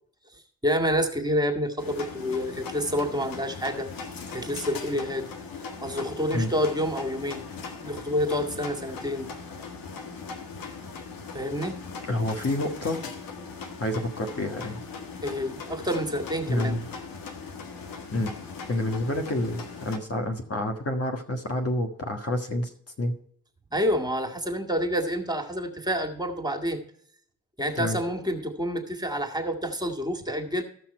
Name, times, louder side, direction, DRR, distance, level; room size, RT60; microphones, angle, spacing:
voice 1, 0.3-3.9 4.3-5.3 5.8-7.4 7.8-9.3 11.3-11.8 15.2-16.8 23.7-26.8 27.6-30.6, equal, 10° right, 3 dB, 1.9 m, -28 dB
sound 1, 1.8-20.0, left 5 dB, 60° left, 1.5 m, -39 dB
voice 2, 12.0-13.0 13.8-14.8 16.5-16.8 18.1-18.3 18.7-22.7 23.0-23.2 27.8-28.0, left 1 dB, 40° left, 4 dB, 1.6 m, -28 dB
15.0 x 6.0 x 4.4 m, 0.64 s
hypercardioid pair, 45°, 38 cm